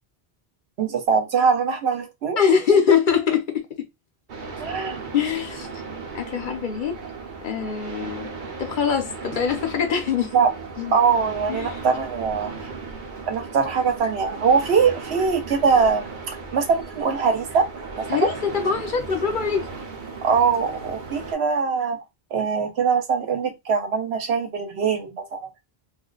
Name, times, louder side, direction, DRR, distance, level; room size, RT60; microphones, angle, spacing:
voice 1, 0.8-2.4 4.6-5.0 10.3-10.5 10.9-12.5 13.3-17.7 18.0-18.1 20.2-22.0 22.3-25.5, right 5 dB, 85° right, 1.0 m, -22 dB
voice 2, 2.4-3.6 5.1-5.7 6.1-7.0 7.4-10.3 10.8-10.9 11.5-11.9 18.1-19.7, left 7 dB, 55° left, 0.8 m, -23 dB
sound 1, 4.3-21.3, right 4 dB, 55° right, 0.8 m, -36 dB
2.4 x 2.1 x 3.7 m
omnidirectional pair, 1.1 m